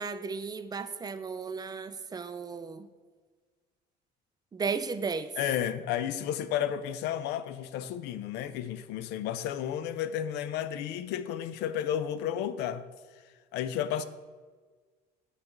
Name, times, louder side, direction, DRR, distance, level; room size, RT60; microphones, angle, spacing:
voice 1, 0.0-2.9 4.5-5.3, right 5 dB, 25° right, 0.4 m, -35 dB
voice 2, 5.4-12.9 13.5-14.0, left 10 dB, 85° left, 0.4 m, -32 dB
7.8 x 3.2 x 5.8 m
cardioid pair, 110°, 17 cm